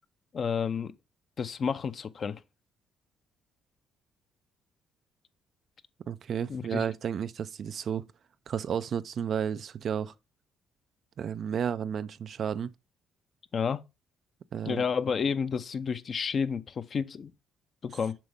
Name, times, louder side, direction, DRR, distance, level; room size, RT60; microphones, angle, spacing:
voice 1, 0.3-0.9 1.4-2.4 6.5-6.8 13.5-13.8 14.6-17.3 17.8-18.2, left 6 dB, 50° left, 0.7 m, -30 dB
voice 2, 6.1-8.1 8.5-10.1 11.2-12.7 14.5-14.8, right 8 dB, 55° right, 0.4 m, -32 dB
7.5 x 5.2 x 3.5 m
supercardioid pair, 75°, 0 cm